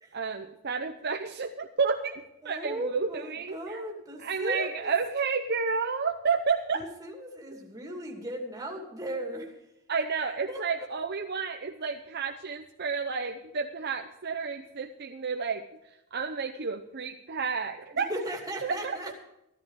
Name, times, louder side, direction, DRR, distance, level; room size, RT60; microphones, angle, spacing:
voice 1, 0.1-3.8 4.2-6.8 9.9-15.7 16.1-18.1 18.6-18.9, right 5 dB, 45° right, 5 dB, 0.8 m, -31 dB
voice 2, 2.4-4.9 6.7-9.5 10.5-10.6 17.9-19.1, right 1 dB, 15° right, 0 dB, 2.6 m, -37 dB
15.0 x 13.0 x 4.9 m, 0.88 s
head